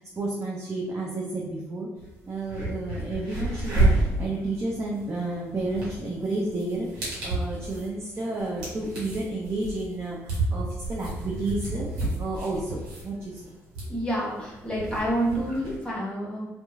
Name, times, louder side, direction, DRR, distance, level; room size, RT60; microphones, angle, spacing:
voice 1, 0.0-1.9 2.3-13.4, right 2 dB, 35° right, -4 dB, 0.6 m, -31 dB
sound 1, 2.0-2.1 2.4-15.8, right 2 dB, 70° right, 1.0 m, -30 dB
voice 2, 13.9-16.5, right 1 dB, 15° left, -7 dB, 1.1 m, -28 dB
2.9 x 2.2 x 2.3 m, 1.1 s
hypercardioid pair, 45°, 8 cm